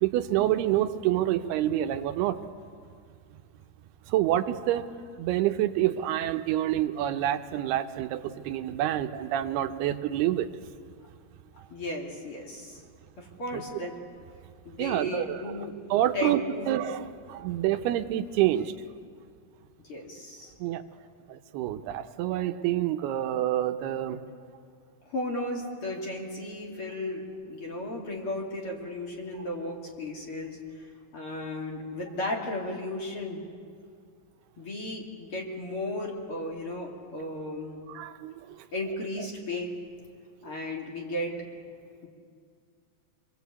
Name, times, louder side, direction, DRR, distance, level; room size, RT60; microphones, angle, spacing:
voice 1, 0.0-2.4 4.1-4.9 5.2-10.5 13.5-13.6 14.8-15.5 15.9-18.7 20.6-20.8 21.3-24.2 37.9-38.3, right 12 dB, 90° right, 8 dB, 2.9 m, -27 dB
voice 2, 11.7-12.8 13.2-13.9 14.6-15.8 16.1-16.7 19.8-20.5 25.0-33.4 34.6-37.8 38.7-39.7 40.4-41.4, left 1 dB, 35° left, -1 dB, 3.2 m, -35 dB
27.5 x 21.0 x 8.3 m, 2.2 s
omnidirectional pair, 4.5 m